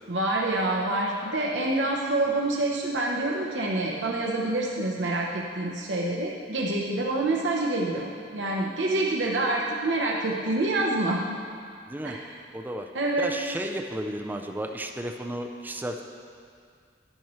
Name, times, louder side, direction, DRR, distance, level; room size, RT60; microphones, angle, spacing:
voice 1, 0.1-11.2 12.0-12.3 12.9-13.3, right 2 dB, 80° right, -2 dB, 0.9 m, -27 dB
voice 2, 11.9-12.2 12.5-12.9 13.2-16.0, right 1 dB, 10° right, 3 dB, 0.4 m, -33 dB
11.0 x 10.0 x 3.1 m, 2.2 s
head